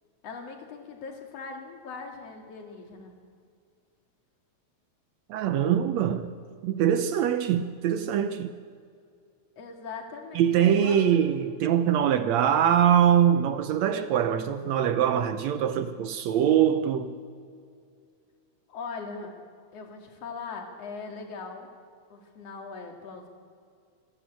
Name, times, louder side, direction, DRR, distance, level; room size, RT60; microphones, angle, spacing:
voice 1, 0.2-3.2 9.6-11.0 18.7-19.3 19.7-21.7 22.1-23.3, left 4 dB, 55° left, 3.3 m, -40 dB
voice 2, 5.3-6.3 6.6-8.5 10.4-17.2, right 9 dB, 75° right, 1.9 m, -23 dB
26.0 x 12.5 x 8.4 m
omnidirectional pair, 3.5 m